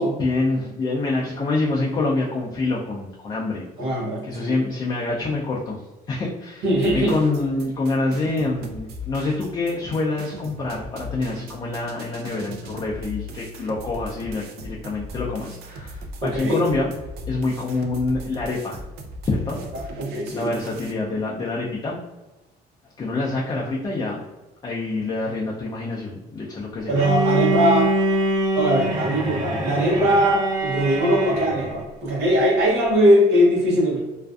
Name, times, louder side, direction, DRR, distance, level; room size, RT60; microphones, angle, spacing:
voice 1, 0.0-3.9 4.2-6.6 6.9-16.9 17.3-18.8 19.2-19.6 20.3-22.0 23.0-24.2 24.6-27.0, left 3 dB, 25° left, -3 dB, 0.4 m, -26 dB
voice 2, 3.8-4.5 6.6-7.2 16.2-16.6 20.0-20.5 26.9-28.0 28.6-34.0, equal, 90° right, -4 dB, 0.8 m, -20 dB
sound 1, 6.8-20.9, left 1 dB, 70° right, 0.4 m, -38 dB
Bowed string instrument, 26.9-31.8, right 1 dB, 25° right, 0.8 m, -24 dB
2.4 x 2.3 x 2.3 m, 1.1 s
cardioid pair, 110°, 17 cm